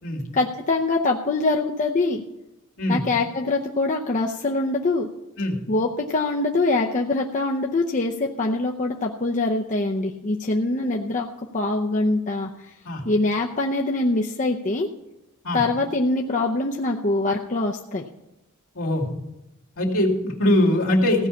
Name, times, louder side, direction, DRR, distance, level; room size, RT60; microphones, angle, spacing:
voice 1, 0.3-2.2 2.9-5.1 5.7-11.3 11.5-12.7 13.0-14.9 15.5-18.1, left 2 dB, 35° left, 1 dB, 0.7 m, -24 dB
voice 2, 18.7-19.1 19.8-21.3, left 1 dB, 65° left, -2 dB, 2.5 m, -21 dB
15.5 x 5.6 x 8.3 m, 0.90 s
head